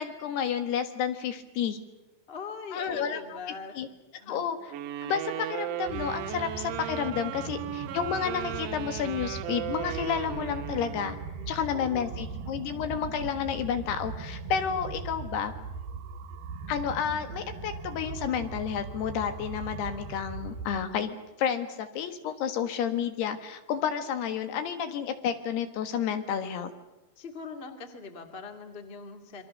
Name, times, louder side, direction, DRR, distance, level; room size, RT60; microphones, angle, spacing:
voice 1, 0.0-1.8 2.7-3.4 3.8-3.9 4.3-4.6 5.0-11.2 11.5-15.5 16.7-26.7, left 8 dB, 70° left, 8 dB, 3.4 m, -31 dB
voice 2, 2.3-3.7 4.2-4.5 7.3-7.7 11.3-12.3 27.1-29.4, left 4 dB, 25° left, 5 dB, 1.5 m, -42 dB
sound 1, 4.7-11.3, right 13 dB, 85° right, 3.4 m, -36 dB
sound 2, 5.8-20.8, right 4 dB, 65° right, 2.7 m, -40 dB
28.0 x 23.5 x 6.6 m, 1.0 s
omnidirectional pair, 5.1 m